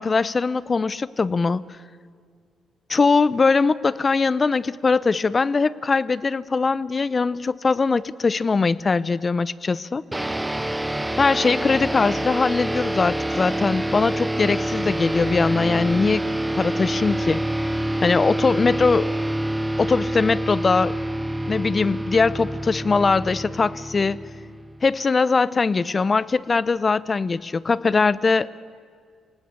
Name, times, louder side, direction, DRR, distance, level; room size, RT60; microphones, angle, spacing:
voice 1, 0.0-1.6 2.9-10.0 11.2-16.2 16.5-17.4 18.0-19.1 19.8-21.0 21.5-24.2 24.8-28.5, left 4 dB, 35° left, 20 dB, 0.7 m, -21 dB
sound 1, 10.1-24.9, right 1 dB, 10° right, 0.7 m, -27 dB
26.5 x 18.5 x 8.5 m, 2.1 s
supercardioid pair, 60°, 0 cm